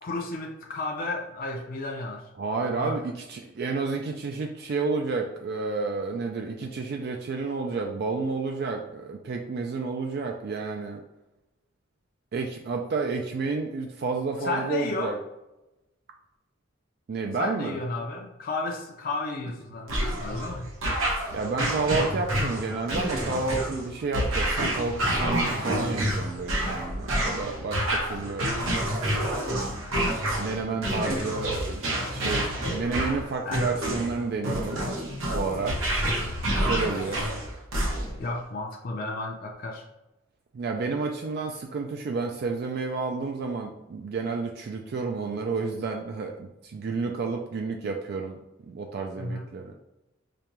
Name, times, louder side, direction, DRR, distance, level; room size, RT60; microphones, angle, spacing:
voice 1, 0.0-2.3 2.8-3.0 14.4-15.2 17.4-20.7 33.4-33.7 37.1-37.3 38.2-39.9 49.2-49.5, left 2 dB, 45° left, 1 dB, 0.5 m, -33 dB
voice 2, 2.4-11.0 12.3-15.2 17.1-17.8 21.3-28.5 29.2-29.7 30.4-31.8 32.1-34.8 35.3-35.8 36.5-37.2 40.5-48.4 48.7-49.8, right 4 dB, 50° right, 3 dB, 0.3 m, -30 dB
sound 1, 19.9-38.3, right 1 dB, 80° right, 1.0 m, -28 dB
5.0 x 2.2 x 2.9 m, 0.95 s
head